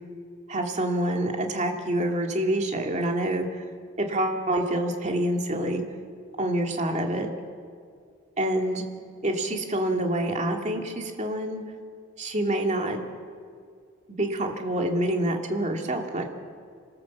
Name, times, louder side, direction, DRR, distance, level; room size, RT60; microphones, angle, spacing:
voice 1, 0.5-3.6 4.0-5.8 6.4-7.3 8.4-8.8 9.2-11.6 12.2-13.0 14.1-16.3, right 1 dB, 35° right, 3 dB, 2.3 m, -27 dB
26.0 x 16.5 x 7.3 m, 2.3 s
head